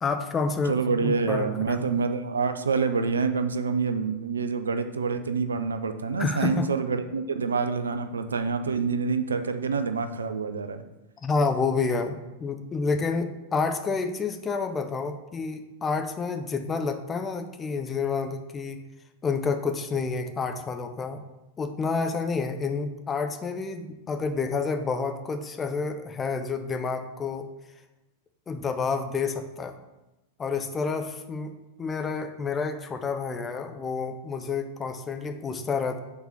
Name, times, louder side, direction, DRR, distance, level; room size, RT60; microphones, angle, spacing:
voice 1, 0.0-1.9 6.2-6.7 11.2-18.8 19.2-21.2 21.6-27.5 28.5-29.8 30.4-31.5 31.8-36.0, left 4 dB, 20° left, 7 dB, 0.7 m, -29 dB
voice 2, 0.7-10.8, right 5 dB, 70° right, 9 dB, 0.5 m, -27 dB
6.8 x 4.1 x 6.5 m, 1.0 s
figure-of-eight pair, 90°, 0 cm